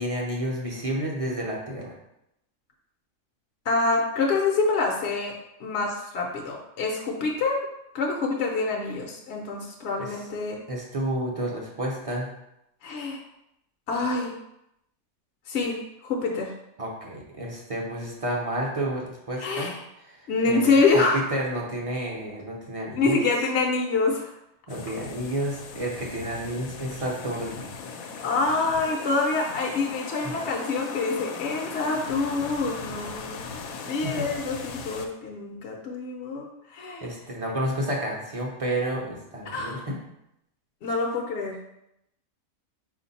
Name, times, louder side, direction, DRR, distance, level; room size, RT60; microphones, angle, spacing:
voice 1, 0.0-1.9 10.0-10.3 10.7-12.3 16.8-23.2 24.7-27.6 30.2-30.3 34.0-34.3 37.0-40.0, right 1 dB, 35° right, -1 dB, 0.6 m, -30 dB
voice 2, 3.7-5.3 5.6-7.6 7.9-10.6 12.8-13.2 13.9-14.3 15.5-15.8 16.0-16.5 19.4-19.7 20.3-21.2 23.0-24.3 28.2-33.4 33.8-37.1 39.5-39.8 40.8-41.7, left 3 dB, 65° left, 0 dB, 0.8 m, -26 dB
sound 1, 24.7-35.1, left 5 dB, 85° left, 1.0 m, -38 dB
4.7 x 2.5 x 4.0 m, 0.84 s
omnidirectional pair, 1.4 m